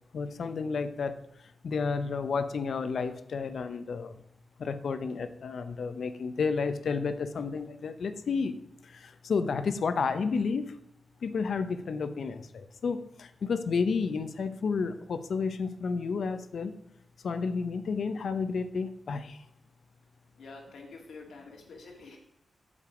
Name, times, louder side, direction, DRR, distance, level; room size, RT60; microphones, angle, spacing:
voice 1, 0.1-1.2 1.6-4.2 4.6-8.5 8.8-10.7 11.2-16.7 17.2-19.4, left 5 dB, 70° left, 11 dB, 0.7 m, -31 dB
voice 2, 20.4-22.2, left 3 dB, 90° left, 1 dB, 2.1 m, -47 dB
8.6 x 6.8 x 4.9 m, 0.77 s
wide cardioid pair, 120°, 0 cm